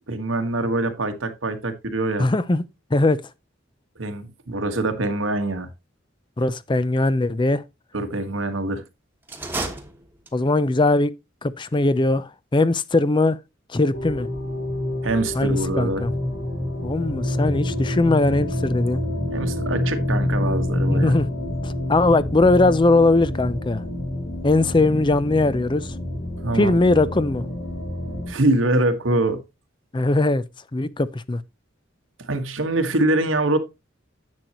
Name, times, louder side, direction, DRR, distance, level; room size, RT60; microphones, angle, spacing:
voice 1, 0.1-2.3 3.9-5.7 7.9-8.8 15.0-16.0 19.3-21.1 26.4-26.8 28.3-29.4 32.2-33.6, right 2 dB, 90° right, 1.6 m, -24 dB
voice 2, 2.2-2.6 2.9-3.2 6.4-7.6 10.3-11.1 11.4-13.4 13.7-14.3 15.3-16.1 16.8-19.0 20.9-21.3 21.6-23.8 24.4-25.9 26.5-27.4 29.9-30.4 30.7-31.4, left 2 dB, 25° left, 0.5 m, -20 dB
sound 1, 9.2-10.6, right 2 dB, 10° right, 1.3 m, -32 dB
sound 2, 13.9-28.3, left 1 dB, 60° left, 3.2 m, -27 dB
10.5 x 7.9 x 3.0 m
head